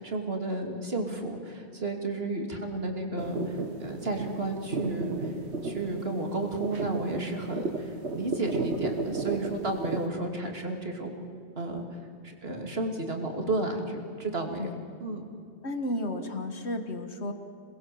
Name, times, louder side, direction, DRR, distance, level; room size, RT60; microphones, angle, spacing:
voice 1, 0.0-5.3 5.6-11.2 11.6-11.8 12.2-14.7 15.0-15.2, right 2 dB, 65° right, 3 dB, 3.1 m, -32 dB
sound 1, 3.2-10.1, right 3 dB, 85° right, 1.9 m, -34 dB
voice 2, 15.6-17.3, left 1 dB, 90° left, 7 dB, 1.9 m, -33 dB
28.0 x 21.0 x 7.8 m, 2.4 s
omnidirectional pair, 1.1 m